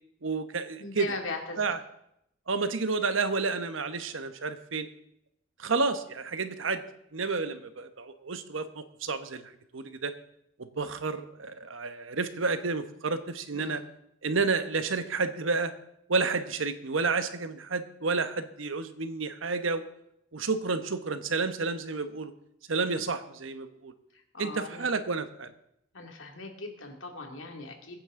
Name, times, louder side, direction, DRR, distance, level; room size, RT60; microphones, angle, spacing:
voice 1, 0.2-1.1 1.6-1.8 2.5-4.9 5.6-6.8 7.1-10.1 10.8-13.8 14.2-15.7 16.1-19.8 20.3-22.3 22.7-23.9 24.4-25.5, right 4 dB, 90° right, 10 dB, 1.1 m, -30 dB
voice 2, 0.8-1.7 13.5-13.8 22.8-23.0 24.1-24.9 25.9-28.0, left 3 dB, 75° left, 3 dB, 2.5 m, -40 dB
22.5 x 9.2 x 3.8 m, 0.78 s
head